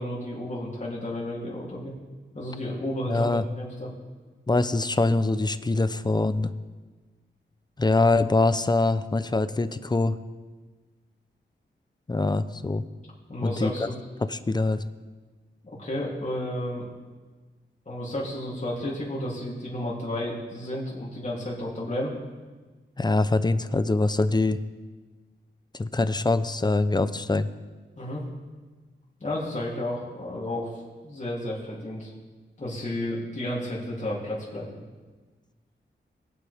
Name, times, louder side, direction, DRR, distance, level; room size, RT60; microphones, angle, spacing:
voice 1, 0.0-1.9 2.3-3.9 13.3-14.0 15.6-16.9 17.8-22.1 28.0-28.2 29.2-32.1 32.6-34.7, left 1 dB, 35° left, -6 dB, 3.2 m, -32 dB
voice 2, 3.1-3.4 4.5-6.5 7.8-10.2 12.1-12.8 13.4-13.7 14.3-14.8 23.0-24.6 25.7-27.5, left 2 dB, 20° left, 12 dB, 0.7 m, -24 dB
21.0 x 8.3 x 3.6 m, 1.3 s
cardioid pair, 65°, 20 cm